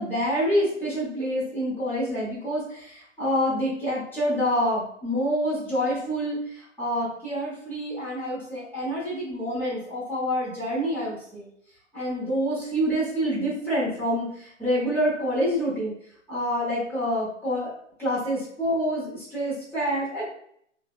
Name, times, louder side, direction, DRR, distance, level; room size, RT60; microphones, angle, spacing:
voice 1, 0.0-11.5 11.9-15.9 16.3-17.7 18.0-20.3, equal, 5° left, -8 dB, 0.7 m, -27 dB
2.7 x 2.0 x 2.3 m, 0.68 s
figure-of-eight pair, 120°, 36 cm